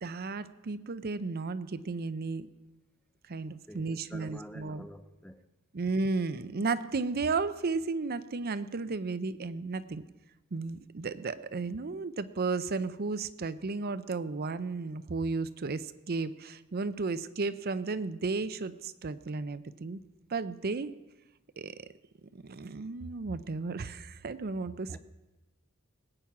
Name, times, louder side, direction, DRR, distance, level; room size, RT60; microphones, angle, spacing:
voice 1, 0.0-2.5 3.3-4.8 5.7-10.0 10.5-20.0 20.3-20.9 21.6-21.8 22.3-25.0, right 3 dB, 45° right, 0.6 m, -34 dB
voice 2, 3.7-5.5 24.9-25.0, equal, 5° left, 0.6 m, -48 dB
19.5 x 8.8 x 5.9 m
head